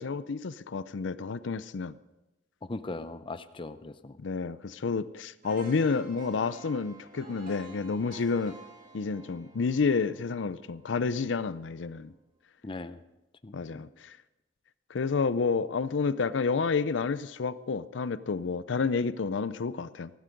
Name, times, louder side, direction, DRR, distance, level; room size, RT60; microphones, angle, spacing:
voice 1, 0.0-2.0 4.2-8.6 8.9-12.1 13.5-14.1 14.9-20.1, left 4 dB, 90° left, 16 dB, 0.5 m, -30 dB
voice 2, 2.6-4.2 12.6-13.0 13.4-13.8, left 2 dB, 30° left, 12 dB, 0.6 m, -39 dB
sound 1, 5.4-11.4 11.8-12.0, right 2 dB, 50° right, 2.7 m, -51 dB
15.0 x 12.0 x 5.2 m, 0.99 s
head